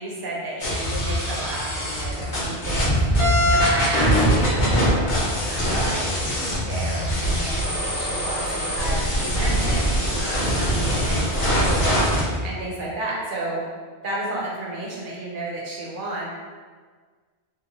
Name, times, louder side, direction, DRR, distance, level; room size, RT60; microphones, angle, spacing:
voice 1, 0.0-13.6 14.0-16.3, right 1 dB, 55° right, -4 dB, 0.7 m, -32 dB
sound 1, 0.6-2.9 3.1-12.2, equal, 85° left, 1.1 m, -23 dB
sound 2, 0.6-9.4 9.9-10.0 10.2-12.7, equal, 55° left, 0.8 m, -29 dB
2.8 x 2.0 x 2.6 m, 1.5 s
omnidirectional pair, 1.1 m